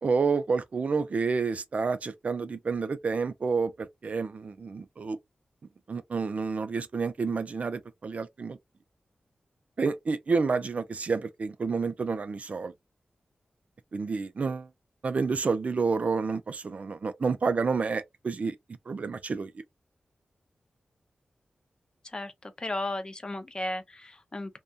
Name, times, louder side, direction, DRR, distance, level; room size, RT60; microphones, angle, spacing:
voice 1, 0.0-5.2 5.9-8.6 9.8-12.7 13.9-14.7 15.0-18.6 18.9-19.5, right 4 dB, 55° right, 0.4 m, -29 dB
voice 2, 22.0-24.6, left 1 dB, 30° left, 0.4 m, -35 dB
2.6 x 2.2 x 2.2 m
wide cardioid pair, 80°, 3 cm